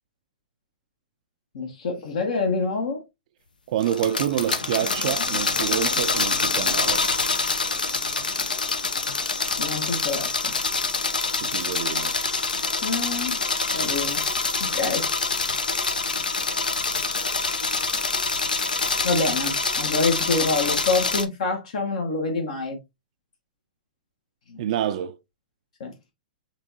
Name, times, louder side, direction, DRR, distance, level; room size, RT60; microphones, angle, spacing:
voice 1, 1.5-3.0 9.6-10.5 12.8-13.4 13.7-14.3 14.6-15.1 19.0-22.8 24.5-24.6 25.8-25.9, left 3 dB, 60° left, 1.1 m, -26 dB
voice 2, 3.7-7.1 11.4-12.2 24.6-25.2, right 10 dB, 55° right, 0.3 m, -27 dB
sound 1, 3.8-21.3, left 4 dB, 85° left, 0.8 m, -26 dB
5.9 x 3.1 x 2.6 m
hypercardioid pair, 115°, 5 cm